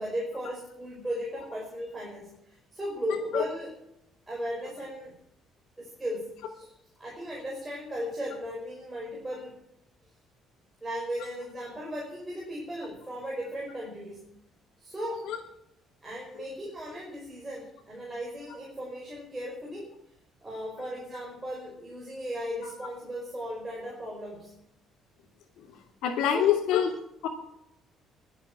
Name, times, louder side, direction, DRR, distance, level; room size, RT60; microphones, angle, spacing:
voice 1, 0.0-3.7 4.3-5.1 5.8-6.7 7.0-9.6 10.8-14.3 14.8-15.3 16.0-19.9 20.4-24.5 26.3-26.5, equal, 10° right, -3 dB, 5.0 m, -36 dB
voice 2, 26.0-26.9 27.2-27.3, left 9 dB, 85° left, -3 dB, 3.0 m, -24 dB
22.5 x 8.7 x 6.1 m, 0.80 s
cardioid pair, 165°, 0 cm